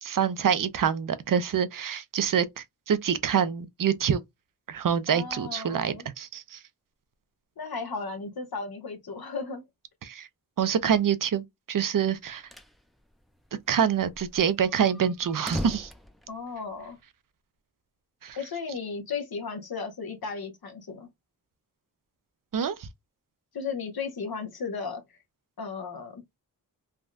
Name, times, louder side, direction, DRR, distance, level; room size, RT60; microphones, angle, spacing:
voice 1, 0.0-4.2 4.7-6.6 10.0-10.3 10.6-12.4 13.7-15.9 18.2-18.4 22.5-22.9, right 8 dB, 65° right, 0.5 m, -26 dB
voice 2, 5.1-6.1 7.6-9.6 16.3-17.0 18.3-21.1 23.5-25.0 25.6-26.2, left 5 dB, 80° left, 0.9 m, -35 dB
sound 1, 12.1-12.8 13.1-13.2 13.4-13.5 14.0-17.0, left 1 dB, ahead, 0.4 m, -39 dB
3.5 x 2.2 x 2.5 m
wide cardioid pair, 85°, 36 cm